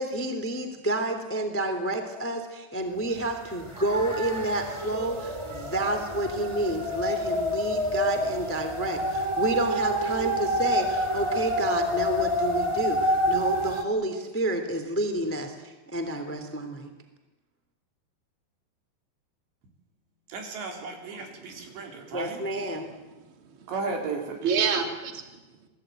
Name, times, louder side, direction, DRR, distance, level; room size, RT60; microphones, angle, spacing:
voice 1, 0.0-16.9 22.1-22.9, right 1 dB, 5° left, 7 dB, 1.8 m, -29 dB
sound 1, 3.2-3.3 3.6-13.8, equal, 10° right, 1.4 m, -28 dB
voice 2, 20.3-22.4 23.7-24.4, right 4 dB, 80° right, 3 dB, 5.9 m, -34 dB
voice 3, 21.2-22.2 23.3-23.7 24.4-25.4, right 6 dB, 35° right, 4 dB, 3.1 m, -30 dB
29.0 x 19.5 x 9.2 m, 1.1 s
omnidirectional pair, 5.0 m